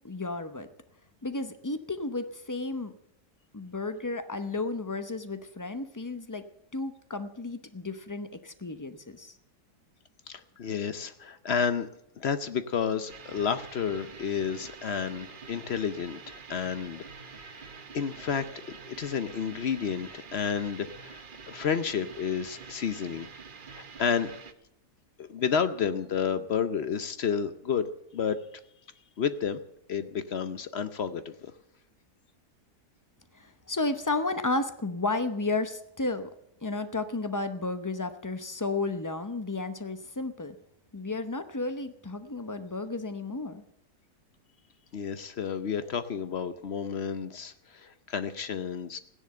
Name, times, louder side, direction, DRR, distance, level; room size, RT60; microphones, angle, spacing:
voice 1, 0.0-0.7 1.2-2.9 3.5-6.4 6.7-9.3 33.3-36.3 36.6-40.6 40.9-43.6, left 3 dB, 30° left, 9 dB, 0.3 m, -33 dB
voice 2, 10.3-11.9 12.2-17.7 17.9-23.3 23.7-24.3 25.2-27.9 28.1-28.4 29.2-29.6 29.9-31.5 44.9-49.0, left 7 dB, 55° left, 12 dB, 0.8 m, -31 dB
sound 1, 13.1-24.5, right 5 dB, 40° right, 0.8 m, -47 dB
15.5 x 10.5 x 7.6 m, 0.77 s
omnidirectional pair, 1.7 m